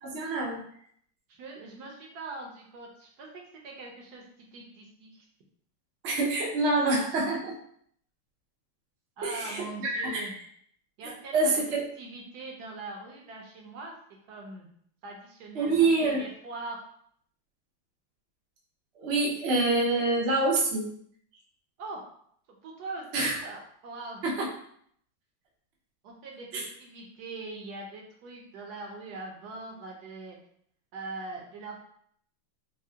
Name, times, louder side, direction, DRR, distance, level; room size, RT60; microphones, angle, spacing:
voice 1, 0.0-0.6 6.0-7.6 9.2-10.3 11.3-11.8 15.5-16.2 19.0-20.9 23.1-23.4 24.2-24.5 26.5-26.7, right 2 dB, 90° right, -2 dB, 0.5 m, -26 dB
voice 2, 1.3-3.3 3.6-4.2 4.5-5.2 9.2-10.3 11.0-13.9 14.3-14.7 15.0-16.8 21.8-22.0 22.6-24.2 26.0-30.4 30.9-31.8, right 3 dB, 75° right, -1 dB, 0.9 m, -42 dB
4.5 x 2.0 x 2.7 m, 0.65 s
omnidirectional pair, 2.2 m